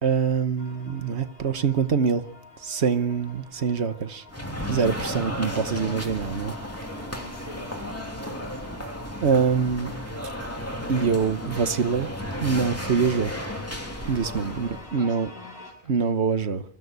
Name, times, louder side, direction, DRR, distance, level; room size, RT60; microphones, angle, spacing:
voice 1, 0.0-2.2 2.6-4.2 4.7-6.5 9.2-9.9 10.9-12.1 12.4-13.3 14.1-15.3 15.9-16.6, right 6 dB, 85° right, 1.4 m, -24 dB
sound 1, 0.6-15.7, left 2 dB, 70° left, 6.4 m, -48 dB
sound 2, 4.3-14.9, equal, 15° left, 2.9 m, -34 dB
voice 2, 7.2-8.8 14.3-16.0, left 1 dB, 30° left, 3.1 m, -47 dB
24.0 x 15.5 x 8.2 m
omnidirectional pair, 1.1 m